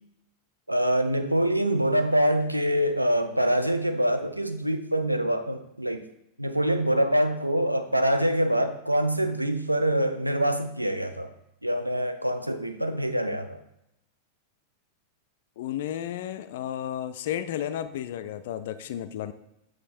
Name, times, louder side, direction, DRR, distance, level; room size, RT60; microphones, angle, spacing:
voice 1, 0.7-6.1 6.4-11.3 11.6-13.6, right 1 dB, 85° right, 8 dB, 0.5 m, -25 dB
voice 2, 15.6-19.3, left 11 dB, 55° left, 11 dB, 0.4 m, -33 dB
8.2 x 3.1 x 4.3 m, 0.85 s
figure-of-eight pair, 90°, 0 cm